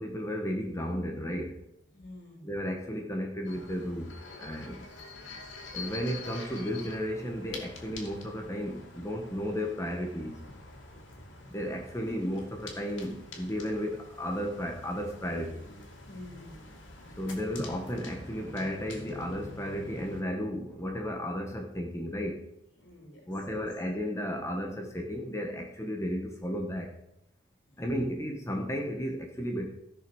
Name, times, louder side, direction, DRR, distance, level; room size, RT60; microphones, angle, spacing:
voice 1, 0.0-1.6 2.4-4.9 5.7-10.4 11.5-15.7 17.2-22.4 23.3-26.9 27.8-29.7, equal, 15° left, 2 dB, 1.3 m, -34 dB
voice 2, 1.9-2.5 5.2-5.3 16.1-16.7 22.8-23.2 23.5-23.7 27.7-28.1, left 1 dB, 60° left, 0 dB, 3.2 m, -49 dB
sound 1, 3.4-20.2, left 3 dB, 80° left, 2.4 m, -46 dB
14.5 x 6.1 x 6.2 m, 0.82 s
head